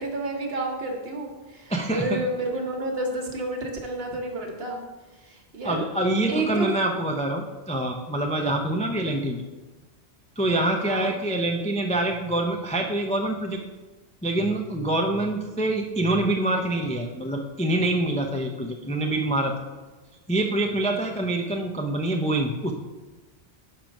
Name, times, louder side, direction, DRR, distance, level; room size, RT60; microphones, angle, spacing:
voice 1, 0.0-4.8 5.3-5.8 6.3-6.7 10.8-11.1, right 2 dB, 65° right, 2 dB, 1.2 m, -30 dB
voice 2, 1.7-2.2 5.6-9.4 10.4-13.6 14.2-19.5 20.3-22.7, right 1 dB, 10° left, 1 dB, 0.3 m, -25 dB
6.0 x 4.6 x 5.1 m, 1.2 s
omnidirectional pair, 1.1 m